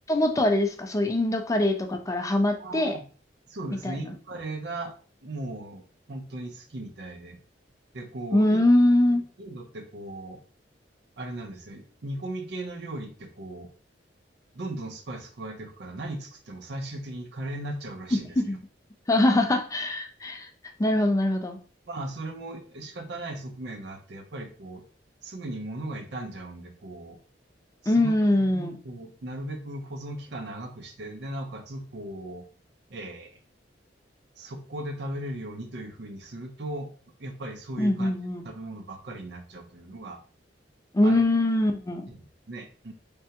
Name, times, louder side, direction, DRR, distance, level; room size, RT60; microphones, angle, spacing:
voice 1, 0.1-2.9 3.8-4.0 8.3-9.2 18.4-18.6 19.1-20.5 20.8-21.6 27.9-28.8 37.8-38.4 40.9-42.0, left 1 dB, 20° left, 5 dB, 0.4 m, -23 dB
voice 2, 2.6-3.1 3.5-4.9 5.2-7.4 7.9-8.6 9.4-10.4 11.2-13.7 14.5-18.6 21.9-24.8 25.2-27.2 27.8-32.5 32.9-33.3 34.4-36.9 37.2-38.1 38.4-40.2 41.0-41.2 42.1-42.9, right 1 dB, 65° right, 5 dB, 0.7 m, -37 dB
3.4 x 3.3 x 2.8 m, 0.39 s
head